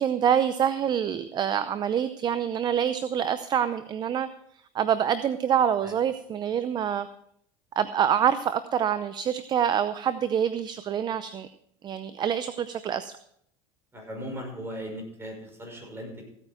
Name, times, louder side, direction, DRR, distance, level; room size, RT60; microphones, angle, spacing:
voice 1, 0.0-4.3 4.7-7.1 7.8-11.5 11.8-13.1, right 8 dB, 35° right, 13 dB, 0.6 m, -26 dB
voice 2, 13.9-16.2, equal, 20° right, 1 dB, 5.8 m, -38 dB
16.0 x 9.0 x 4.4 m, 0.70 s
supercardioid pair, 110°, 13 cm